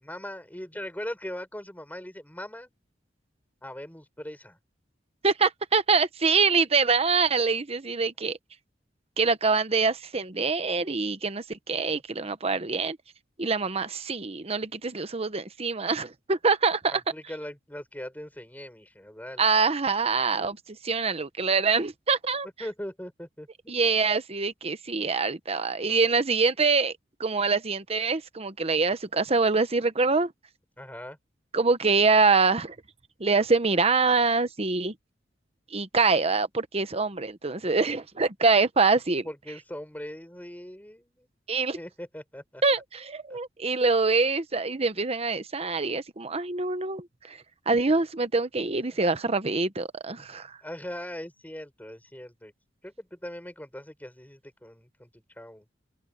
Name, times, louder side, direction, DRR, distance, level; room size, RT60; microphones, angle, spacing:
voice 1, 0.0-2.7 3.6-4.6 16.9-19.5 22.6-23.9 30.8-31.2 39.2-41.3 41.7-42.6 43.3-43.4 50.3-52.5 52.8-55.6, left 1 dB, 10° left, 6.4 m, -40 dB
voice 2, 5.2-8.4 9.2-13.0 13.4-17.0 19.4-22.5 23.7-26.9 27.2-30.3 31.5-32.8 33.2-34.9 35.7-39.2 41.5-41.8 42.6-47.4 47.7-50.6, right 4 dB, 35° right, 1.0 m, -25 dB
head